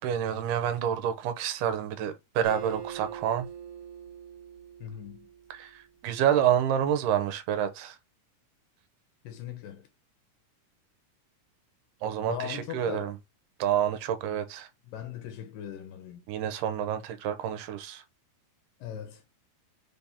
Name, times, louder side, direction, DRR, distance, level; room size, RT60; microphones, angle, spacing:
voice 1, 0.0-3.5 5.5-8.0 12.0-13.1 13.6-14.7 16.3-18.0, right 9 dB, 85° right, 2.2 m, -28 dB
Acoustic guitar, 2.4-5.9, right 8 dB, 50° right, 1.8 m, -43 dB
voice 2, 4.8-5.3 9.2-9.9 12.2-13.2 14.8-16.3 18.8-19.2, left 10 dB, 85° left, 2.4 m, -39 dB
5.3 x 2.8 x 3.4 m
omnidirectional pair, 3.9 m